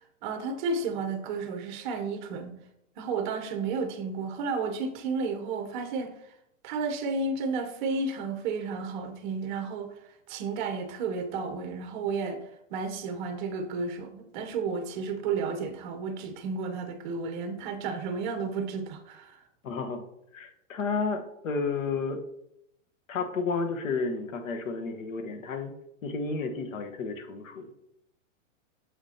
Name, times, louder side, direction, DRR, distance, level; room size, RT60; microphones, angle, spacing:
voice 1, 0.0-2.6 3.0-6.1 6.6-10.0 10.3-19.4, right 4 dB, 40° right, 7 dB, 0.9 m, -32 dB
voice 2, 19.6-20.0 20.3-22.2 23.1-25.7 26.0-27.8, left 4 dB, 80° left, 7 dB, 1.4 m, -32 dB
7.1 x 6.8 x 2.9 m, 0.78 s
supercardioid pair, 155°, 39 cm